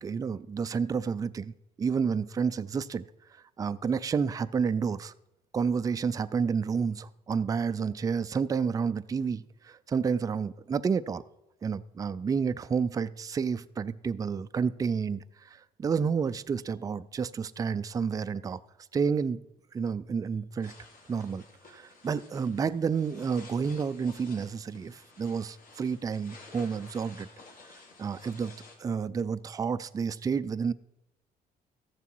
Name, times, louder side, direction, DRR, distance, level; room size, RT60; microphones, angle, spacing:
voice 1, 0.0-3.0 3.3-5.1 5.5-11.2 11.6-18.6 18.9-19.4 19.7-20.7 21.1-21.4 21.7-27.3 28.0-30.7, right 6 dB, 20° right, 13 dB, 0.3 m, -30 dB
sound 1, 20.6-28.8, left 3 dB, 55° left, 2.4 m, -53 dB
14.0 x 7.1 x 4.6 m, 0.86 s
cardioid pair, 110°, 17 cm